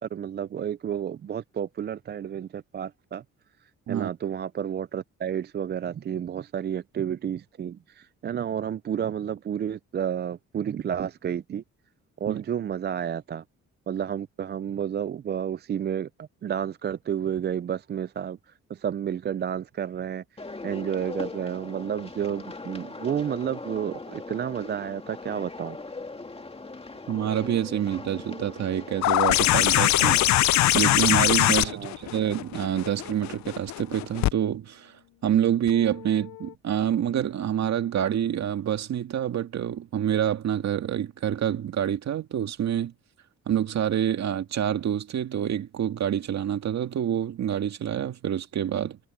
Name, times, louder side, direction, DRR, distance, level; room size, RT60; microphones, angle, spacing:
voice 1, 0.0-3.2 3.9-11.6 12.2-13.4 13.9-20.2 20.6-25.8 31.7-32.0, right 9 dB, 35° right, 0.4 m, -31 dB
sound 1, 20.4-30.3, left 3 dB, 20° left, 2.5 m, -40 dB
voice 2, 27.1-30.3 30.7-34.9 35.2-42.9 43.5-49.0, right 10 dB, 60° right, 2.3 m, -27 dB
sound 2, 29.0-34.3 35.7-35.8, left 15 dB, 65° left, 0.5 m, -22 dB
cardioid pair, 90°, 30 cm